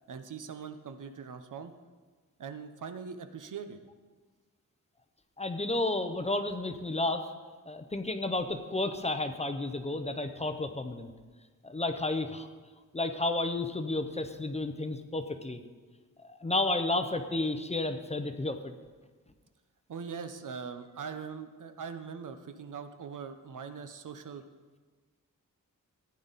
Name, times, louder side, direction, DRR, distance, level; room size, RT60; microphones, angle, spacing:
voice 1, 0.1-1.7 2.4-3.8 19.9-24.4, right 6 dB, 70° right, 9 dB, 0.9 m, -41 dB
voice 2, 5.4-7.3 7.7-11.1 11.6-12.5 12.9-15.6 16.2-18.7, left 2 dB, 20° left, 7 dB, 0.6 m, -32 dB
15.5 x 9.6 x 4.1 m, 1.4 s
wide cardioid pair, 170°, 33 cm